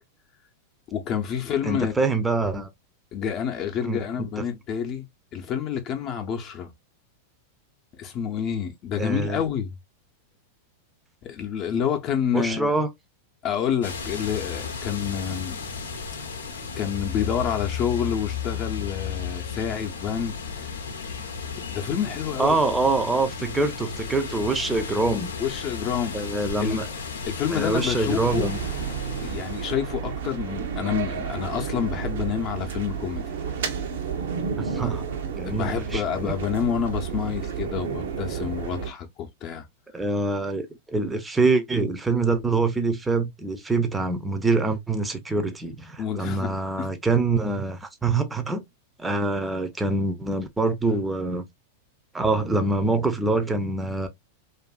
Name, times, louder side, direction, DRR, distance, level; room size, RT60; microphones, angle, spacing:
voice 1, 0.9-1.9 3.1-5.1 5.3-6.7 8.0-9.8 11.2-12.7 13.4-15.6 16.8-20.7 21.7-22.6 25.4-26.2 26.6-26.8 27.3-28.5 29.2-33.2 34.8-34.9 35.4-39.7 46.0-46.9, left 8 dB, 40° left, 0.6 m, -28 dB
voice 2, 1.6-2.7 3.8-4.0 9.0-9.4 12.3-12.9 22.4-25.3 26.1-26.8 27.5-28.6 34.6-35.0 35.3-36.3 39.9-48.6 49.0-51.4 52.1-54.1, right 3 dB, 10° right, 0.6 m, -25 dB
sound 1, 13.8-29.7, left 6 dB, 90° left, 0.6 m, -34 dB
sound 2, 28.2-38.9, right 7 dB, 70° right, 0.7 m, -31 dB
2.6 x 2.5 x 2.3 m
hypercardioid pair, 105°, 0 cm